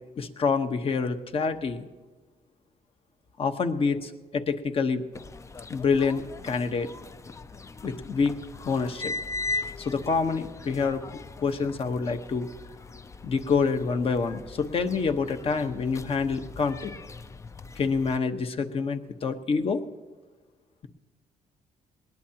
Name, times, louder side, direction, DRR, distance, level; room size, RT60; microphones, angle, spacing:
voice 1, 0.2-1.9 3.4-5.0 5.7-6.9 7.8-8.4 8.6-9.1 9.8-11.0 11.4-12.5 13.2-16.9 17.8-19.8, left 5 dB, 40° left, 8 dB, 1.1 m, -27 dB
sound 1, 5.1-18.2, left 3 dB, 20° left, 0.5 m, -39 dB
20.5 x 19.5 x 2.9 m, 1.3 s
cardioid pair, 110°, 14 cm